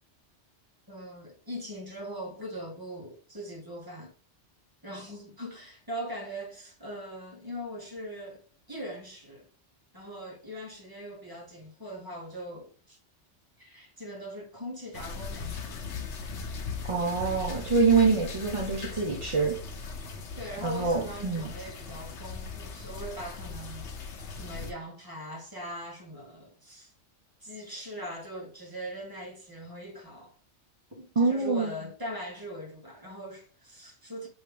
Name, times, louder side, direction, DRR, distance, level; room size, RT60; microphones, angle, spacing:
voice 1, 0.9-4.1 4.8-9.5 9.9-13.0 13.6-15.8 20.3-23.9 24.3-26.9 27.4-30.3 30.9-34.3, equal, 20° right, 1.4 m, -41 dB
sound 1, 14.9-24.7, left 5 dB, 75° left, 1.1 m, -39 dB
voice 2, 16.9-19.6 20.6-21.5 31.2-31.7, right 4 dB, 35° right, 0.6 m, -25 dB
5.0 x 3.1 x 3.3 m
omnidirectional pair, 1.2 m